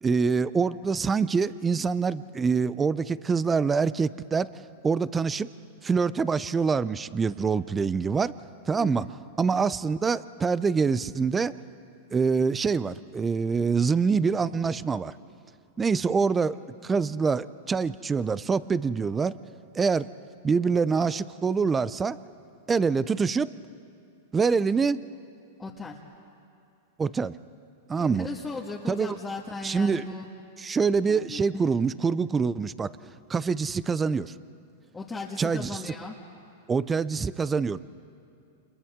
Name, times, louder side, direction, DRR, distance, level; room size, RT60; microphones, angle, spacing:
voice 1, 0.0-4.5 4.8-5.5 5.8-8.3 8.7-9.1 9.4-11.6 12.1-15.1 15.8-19.4 19.7-20.1 20.4-22.2 22.7-23.5 24.3-25.0 27.0-27.3 27.9-28.3 28.9-29.1 29.6-30.0 30.6-33.0 33.3-34.3 35.4-35.8 36.7-37.8, right 5 dB, 20° right, 17 dB, 0.6 m, -25 dB
voice 2, 8.7-9.1 25.6-26.0 28.0-30.3 31.0-31.8 34.9-36.2, left 3 dB, 15° left, -4 dB, 1.8 m, -37 dB
29.5 x 27.5 x 3.7 m, 2.6 s
hypercardioid pair, 110°, 0 cm